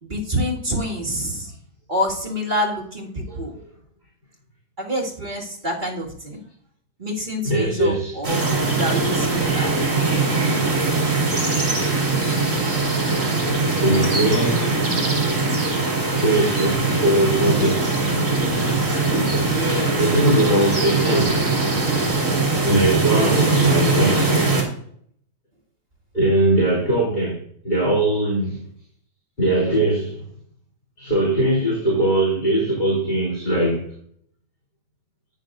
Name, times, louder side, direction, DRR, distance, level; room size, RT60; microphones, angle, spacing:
voice 1, 0.0-1.5 1.9-3.5 4.8-6.4 7.0-8.4 8.8-9.7 19.5-20.0, equal, 30° right, -3 dB, 2.1 m, -27 dB
voice 2, 3.3-3.6 7.4-8.2 13.8-14.6 16.2-17.9 20.0-21.5 22.6-24.4 26.1-27.4 27.6-28.6 29.4-30.2 31.0-33.8, right 1 dB, 25° left, -6 dB, 3.2 m, -20 dB
sound 1, 8.2-24.6, right 3 dB, 45° right, 3.3 m, -21 dB
11.0 x 9.0 x 2.5 m, 0.63 s
omnidirectional pair, 1.8 m